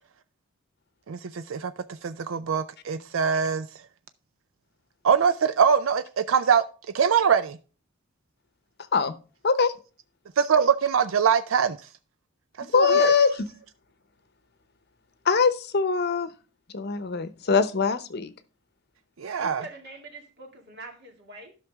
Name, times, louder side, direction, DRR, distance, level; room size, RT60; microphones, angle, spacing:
voice 1, 1.1-1.7 2.0-3.7 5.0-6.6 6.9-7.6 10.4-11.8 12.7-13.1 19.2-19.6, right 7 dB, 75° right, 0.5 m, -23 dB
voice 2, 12.7-13.3 15.2-16.3 16.7-18.3, left 5 dB, 55° left, 0.8 m, -22 dB
voice 3, 19.4-21.6, right 2 dB, 55° right, 2.2 m, -44 dB
12.0 x 6.0 x 3.5 m
head